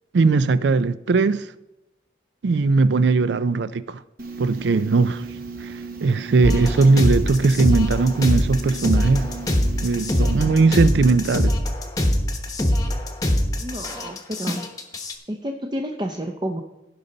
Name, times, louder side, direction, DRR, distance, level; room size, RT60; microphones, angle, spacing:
voice 1, 0.1-1.5 2.4-4.0 4.4-5.3 5.6-5.7 6.0-9.3 9.8-11.6, right 3 dB, 75° right, 0.4 m, -19 dB
sound 1, 4.2-10.4, right 4 dB, 50° right, 0.9 m, -36 dB
sound 2, 6.4-15.1, left 1 dB, 20° left, 0.9 m, -23 dB
voice 2, 13.6-14.6 15.3-16.6, equal, 25° right, 0.6 m, -30 dB
16.0 x 5.4 x 3.9 m
head